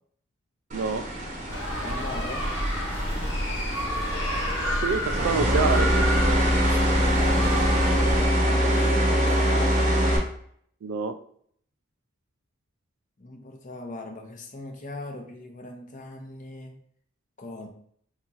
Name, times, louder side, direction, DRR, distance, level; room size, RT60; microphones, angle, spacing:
sound 1, 0.7-10.2, equal, 40° right, 0.8 m, -24 dB
voice 1, 0.7-1.1 4.6-6.3 10.8-11.2, right 5 dB, 75° right, 9 dB, 0.3 m, -28 dB
sound 2, 1.5-8.2, equal, 60° left, 1.1 m, -29 dB
voice 2, 1.8-2.5 6.6-7.6 8.7-10.1 13.2-16.8 17.4-17.7, left 2 dB, 40° left, 3 dB, 0.5 m, -38 dB
3.9 x 2.9 x 2.4 m, 0.63 s
head